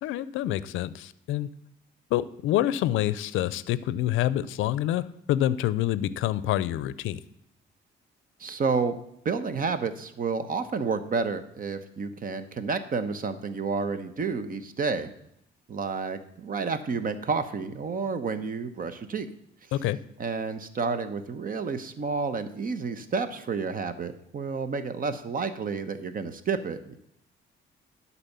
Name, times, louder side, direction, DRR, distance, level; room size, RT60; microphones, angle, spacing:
voice 1, 0.0-1.5 2.1-7.2 19.7-20.0, left 13 dB, 90° left, 17 dB, 0.5 m, -27 dB
voice 2, 8.4-9.0 9.2-15.1 15.7-19.3 20.2-27.0, right 4 dB, 45° right, 11 dB, 0.9 m, -30 dB
11.5 x 4.3 x 6.8 m, 0.77 s
cardioid pair, 90°, 20 cm